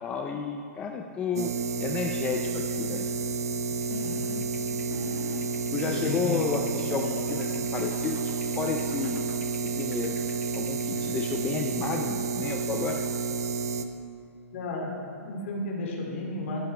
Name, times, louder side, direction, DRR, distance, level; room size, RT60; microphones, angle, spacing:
voice 1, 0.0-3.1 5.7-9.2 9.7-10.1 10.5-13.0, left 5 dB, 15° left, 2 dB, 0.4 m, -32 dB
sound 1, 1.4-13.9, right 5 dB, 70° right, 0.7 m, -30 dB
sound 2, 3.8-12.2, left 6 dB, 75° left, 1.0 m, -43 dB
voice 2, 5.8-6.4 14.5-14.9 15.2-16.6, left 3 dB, 50° left, -1 dB, 2.5 m, -32 dB
13.0 x 12.0 x 3.3 m, 2.4 s
hypercardioid pair, 155°, 9 cm